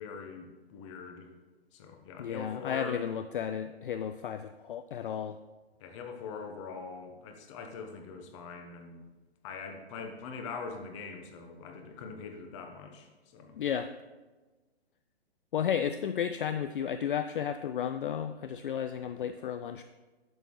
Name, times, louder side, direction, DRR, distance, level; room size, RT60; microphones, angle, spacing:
voice 1, 0.0-1.3 1.7-3.0 5.8-9.1 9.4-13.6, left 4 dB, 30° left, 5 dB, 1.0 m, -43 dB
voice 2, 2.2-5.4 13.5-13.9 15.5-19.8, left 8 dB, 55° left, 10 dB, 0.4 m, -33 dB
10.5 x 6.8 x 3.1 m, 1.2 s
figure-of-eight pair, 130°, 32 cm